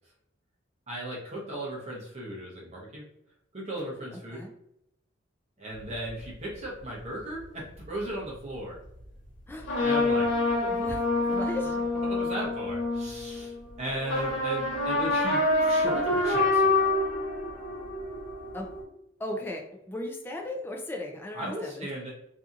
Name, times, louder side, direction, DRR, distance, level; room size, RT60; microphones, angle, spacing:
voice 1, 0.9-3.0 3.5-4.4 5.6-8.8 9.8-10.3 11.3-11.7 12.1-16.9 21.3-22.1, equal, 35° right, -4 dB, 0.7 m, -36 dB
sound 1, 5.8-6.2 7.4-7.5 9.6-13.6 14.0-18.8, left 2 dB, 70° left, 1.1 m, -27 dB
voice 2, 10.5-11.8 18.5-18.7 19.2-21.9, left 1 dB, 10° left, 1 dB, 0.4 m, -36 dB
2.7 x 2.5 x 2.4 m, 0.79 s
head